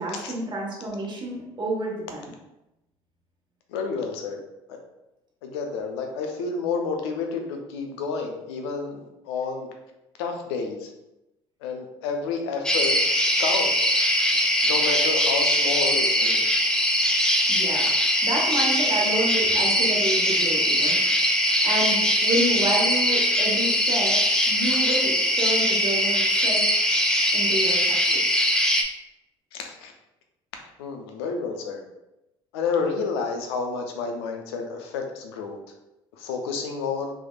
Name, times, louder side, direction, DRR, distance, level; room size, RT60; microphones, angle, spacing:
voice 1, 0.0-2.3 17.5-17.9 18.2-21.0 21.6-24.2 24.5-26.8 27.3-28.2, right 1 dB, 35° right, -3 dB, 1.1 m, -29 dB
voice 2, 3.7-4.4 4.7-4.8 5.4-9.7 10.2-10.9 11.6-13.7 14.6-16.6 29.5-29.9 30.8-31.8 32.5-35.6 36.2-37.1, left 4 dB, 80° left, 3 dB, 0.5 m, -30 dB
sound 1, 12.6-28.8, equal, 5° left, 0.5 m, -21 dB
3.3 x 3.1 x 2.3 m, 0.92 s
hypercardioid pair, 65°, 13 cm